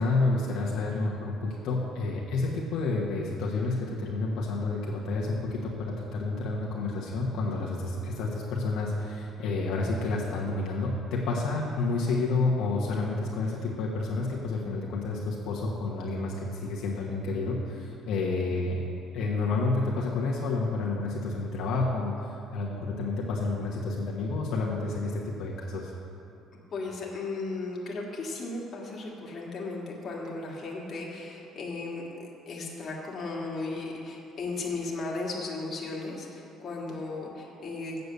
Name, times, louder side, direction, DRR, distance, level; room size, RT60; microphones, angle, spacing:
voice 1, 0.0-18.8 19.1-25.9, left 3 dB, 70° left, -4 dB, 1.3 m, -30 dB
voice 2, 26.7-38.0, left 3 dB, 35° left, -3 dB, 1.8 m, -36 dB
8.1 x 6.8 x 6.8 m, 2.7 s
cardioid pair, 135°, 0 cm